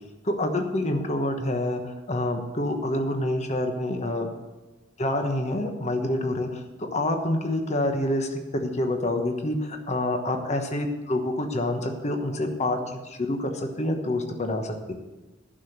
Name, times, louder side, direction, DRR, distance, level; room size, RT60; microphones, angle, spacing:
voice 1, 0.2-4.3 5.0-14.9, left 1 dB, 35° left, 5 dB, 1.2 m, -27 dB
11.5 x 6.1 x 7.9 m, 1.2 s
head